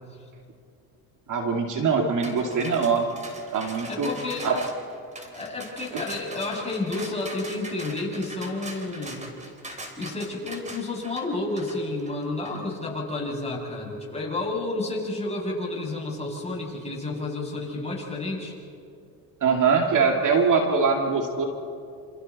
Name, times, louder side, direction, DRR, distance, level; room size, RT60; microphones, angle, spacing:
voice 1, 1.3-3.1 3.5-4.1 4.4-4.6 5.9-6.0 19.4-21.5, right 5 dB, 50° right, 2 dB, 2.5 m, -22 dB
sound 1, 2.2-12.6, right 1 dB, 15° right, 3.6 m, -41 dB
voice 2, 3.9-4.5 5.3-9.2 9.9-18.5, left 2 dB, 15° left, -3 dB, 7.0 m, -31 dB
28.5 x 28.0 x 4.2 m, 2.6 s
supercardioid pair, 100°, 41 cm